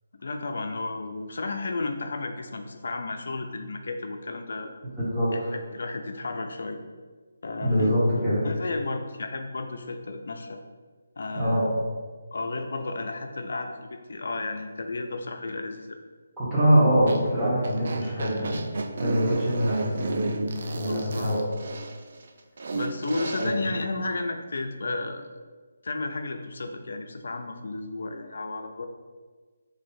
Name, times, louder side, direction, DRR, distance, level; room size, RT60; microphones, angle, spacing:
voice 1, 0.1-4.7 5.3-6.8 7.4-8.0 8.4-10.6 11.2-11.7 12.3-16.0 20.9-21.3 22.7-25.3 25.8-28.9, left 3 dB, 65° left, 5 dB, 0.4 m, -33 dB
voice 2, 5.0-5.5 7.6-8.4 11.3-11.7 16.4-18.7 19.0-21.4 23.4-23.5, equal, 5° right, -11 dB, 1.0 m, -24 dB
sound 1, 17.0-23.5, right 3 dB, 50° right, 0.3 m, -34 dB
3.1 x 2.6 x 4.0 m, 1.4 s
hypercardioid pair, 165°, 0 cm